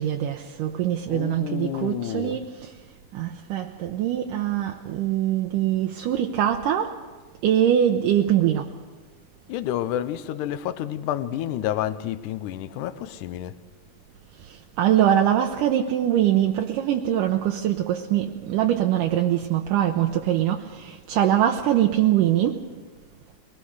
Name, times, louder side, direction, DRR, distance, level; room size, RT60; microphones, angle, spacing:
voice 1, 0.0-2.7 3.1-6.9 7.4-8.7 14.8-22.6, right 11 dB, 75° right, 2.2 m, -23 dB
voice 2, 1.1-2.4 9.5-13.6, left 12 dB, 75° left, 2.1 m, -29 dB
22.0 x 19.0 x 6.5 m
omnidirectional pair, 4.2 m